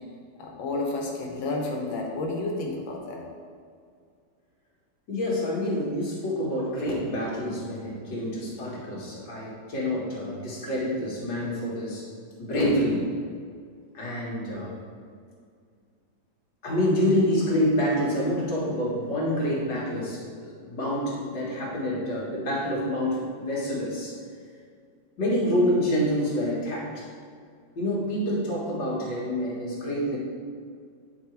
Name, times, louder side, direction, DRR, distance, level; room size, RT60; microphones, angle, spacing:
voice 1, 0.4-3.2, left 2 dB, 85° left, 0 dB, 1.8 m, -31 dB
voice 2, 5.1-12.1 12.4-13.0 13.9-14.8 16.6-24.2 25.2-27.1 27.8-30.2, equal, 65° left, -5 dB, 2.3 m, -27 dB
9.2 x 4.0 x 4.6 m, 2.2 s
omnidirectional pair, 2.0 m